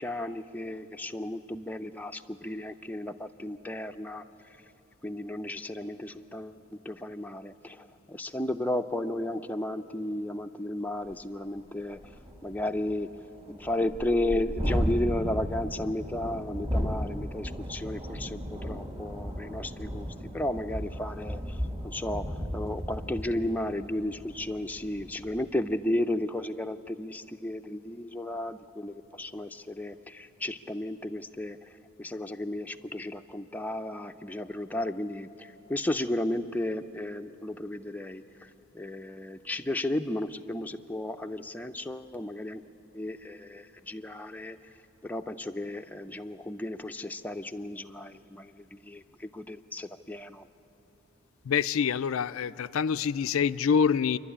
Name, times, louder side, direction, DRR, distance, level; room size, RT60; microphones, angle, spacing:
voice 1, 0.0-4.2 5.0-12.0 12.4-13.1 13.5-20.1 20.3-38.5 38.7-42.6 42.9-44.6 45.0-50.5, left 1 dB, 10° left, 6 dB, 0.5 m, -34 dB
Thunderstorm, 11.1-11.2 11.6-11.7 12.0-25.6, equal, 30° right, 1.8 m, -35 dB
voice 2, 51.5-54.2, left 6 dB, 70° left, 13 dB, 0.4 m, -26 dB
28.5 x 11.5 x 9.9 m, 2.9 s
head